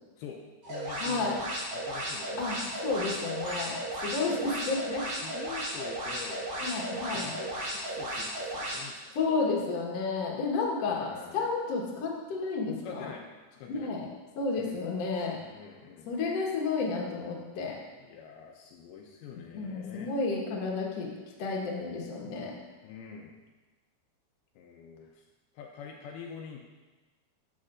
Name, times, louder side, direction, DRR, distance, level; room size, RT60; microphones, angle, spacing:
voice 1, 0.2-1.5 1.7-2.8 4.7-9.2 10.9-11.5 12.8-13.2 13.5-13.9 14.6-14.8 15.5-16.1 18.0-20.1 22.8-23.4 24.6-25.2 25.5-26.6, left 6 dB, 80° left, 0 dB, 2.4 m, -46 dB
sound 1, 0.6-8.8, right 1 dB, 80° right, 5.1 m, -35 dB
voice 2, 1.0-1.3 2.4-2.6 2.8-5.0 6.6-7.3 9.2-13.1 13.7-14.1 14.4-15.4 16.1-17.8 19.5-21.1 21.4-22.5, left 4 dB, 60° left, -3 dB, 1.8 m, -31 dB
12.5 x 7.4 x 2.5 m, 1.2 s
omnidirectional pair, 4.8 m